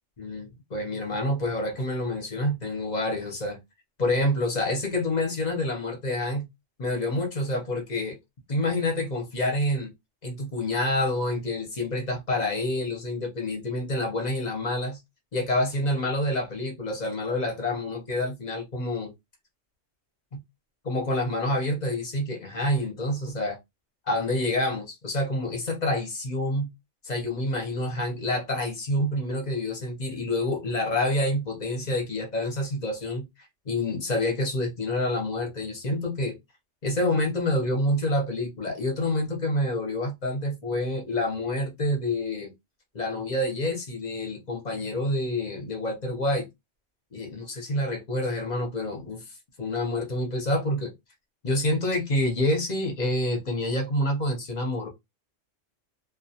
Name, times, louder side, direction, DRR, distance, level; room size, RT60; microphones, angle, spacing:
voice 1, 0.2-3.6 4.0-6.5 6.8-8.2 8.5-9.9 10.2-15.0 15.3-19.1 20.3-20.4 20.8-23.6 24.1-26.7 27.0-33.3 33.7-36.4 36.8-42.5 42.9-46.5 47.1-49.2 49.6-50.9 51.4-54.9, left 1 dB, 40° left, 0.7 m, -27 dB
2.2 x 2.2 x 2.7 m
omnidirectional pair, 1.3 m